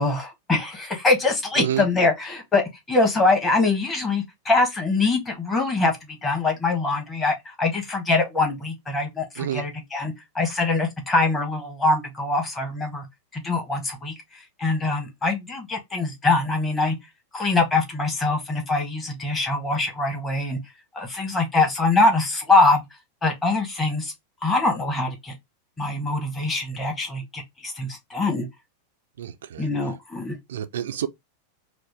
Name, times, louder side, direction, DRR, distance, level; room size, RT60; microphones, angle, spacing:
voice 1, 0.0-13.0 13.3-14.1 14.6-16.9 17.3-20.6 20.9-22.8 23.2-24.1 24.4-25.3 25.8-28.4 29.6-30.4, left 3 dB, 15° left, 1.6 m, -23 dB
voice 2, 1.6-1.9 9.4-9.6 29.2-29.7 30.5-31.1, right 10 dB, 60° right, 0.5 m, -28 dB
4.9 x 2.1 x 3.3 m
figure-of-eight pair, 90°, 0 cm